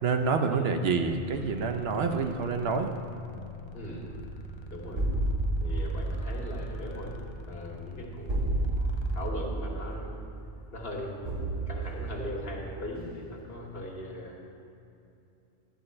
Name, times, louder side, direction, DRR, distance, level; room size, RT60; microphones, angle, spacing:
voice 1, 0.0-2.9, right 5 dB, 70° right, 6 dB, 0.9 m, -27 dB
sound 1, 0.9-9.3, left 1 dB, 40° left, 0.4 m, -45 dB
voice 2, 3.7-4.1 4.7-5.0 5.6-7.2 7.5-8.3 9.1-10.2 10.7-14.4, left 1 dB, 65° left, -1 dB, 1.6 m, -39 dB
sound 2, 4.1-13.5, right 2 dB, 40° right, 1.1 m, -32 dB
10.5 x 4.3 x 7.8 m, 2.7 s
omnidirectional pair, 1.1 m